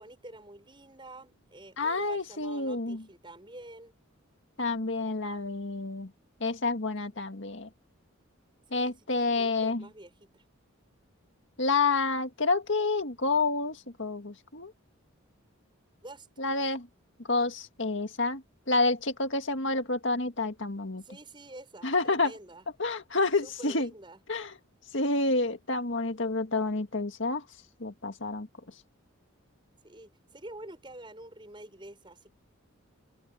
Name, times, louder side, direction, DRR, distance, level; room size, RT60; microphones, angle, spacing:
voice 1, 0.0-4.0 8.7-10.4 16.0-16.3 21.0-22.7 23.4-24.2 29.8-32.3, right 1 dB, 25° right, 6.5 m, -48 dB
voice 2, 1.8-3.0 4.6-6.1 6.4-7.7 8.7-9.8 11.6-14.7 16.4-16.9 17.3-21.0 21.8-22.3 22.8-23.9 24.3-24.5 24.9-27.4 27.8-28.5, left 3 dB, 60° left, 2.0 m, -29 dB
open air
head